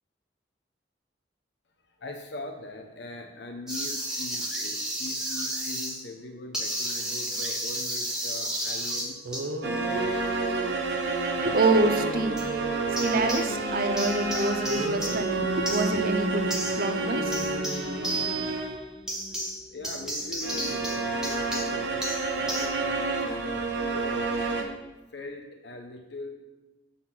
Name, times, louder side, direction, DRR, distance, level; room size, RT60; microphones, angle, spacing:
voice 1, 1.8-10.7 19.3-22.1 22.3-24.8 25.1-26.3, left 2 dB, 65° left, 4 dB, 0.9 m, -41 dB
sound 1, 3.7-6.0 6.5-9.5 12.4-12.6 13.0-13.7 14.0-22.7, right 1 dB, 5° right, 1.1 m, -33 dB
sound 2, 9.0-9.1 9.2-13.4 14.7-18.7, right 2 dB, 90° right, 0.7 m, -36 dB
sound 3, 9.6-18.9 20.4-24.6, right 3 dB, 65° right, 1.1 m, -29 dB
voice 2, 11.3-12.4 12.9-17.6, right 3 dB, 50° right, 8 dB, 0.6 m, -27 dB
7.6 x 4.2 x 5.7 m, 1.1 s
head